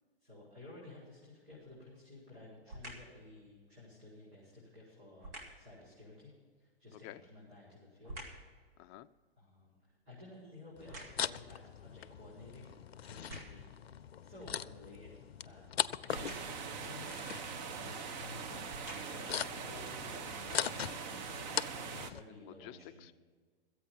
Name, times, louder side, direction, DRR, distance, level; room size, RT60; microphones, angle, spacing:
voice 1, 0.2-6.3 6.6-8.2 9.4-9.8 10.0-12.7 13.0-13.8 14.2-15.1 15.4-15.7 16.0-17.1 18.1-18.6 19.1-21.6 21.9-23.1, left 2 dB, 90° right, -7 dB, 5.1 m, -54 dB
sound 1, 1.5-1.9 2.7-3.2 5.2-5.7 7.1-8.5 9.0-11.5 12.2-12.3 13.0-13.8 16.1-16.7 17.7-17.9 18.5-19.4 20.0-20.1, right 1 dB, 70° right, 3.2 m, -50 dB
voice 2, 6.9-7.2 8.8-9.1 17.8-18.1 22.3-23.1, left 15 dB, 25° left, 12 dB, 0.4 m, -52 dB
sound 2, 10.8-22.2, left 9 dB, 85° left, 0.5 m, -41 dB
sound 3, 16.1-22.1, right 6 dB, 45° right, 1.0 m, -42 dB
14.0 x 8.5 x 7.3 m, 1.6 s
hypercardioid pair, 115°, 30 cm